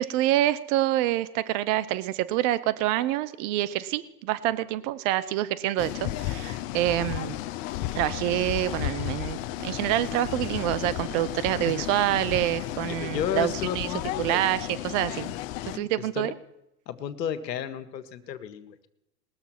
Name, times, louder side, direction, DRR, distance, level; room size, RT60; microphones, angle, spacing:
voice 1, 0.0-7.3 7.9-13.9 14.2-14.6 14.8-15.3 15.7-16.3, right 14 dB, 50° right, 16 dB, 0.9 m, -27 dB
sound 1, 5.8-15.8, left 14 dB, 55° left, 0.8 m, -33 dB
voice 2, 12.9-14.4 15.7-16.3 16.9-18.9, left 9 dB, 80° left, 10 dB, 1.4 m, -33 dB
20.0 x 7.0 x 6.0 m, 0.87 s
hypercardioid pair, 110°, 49 cm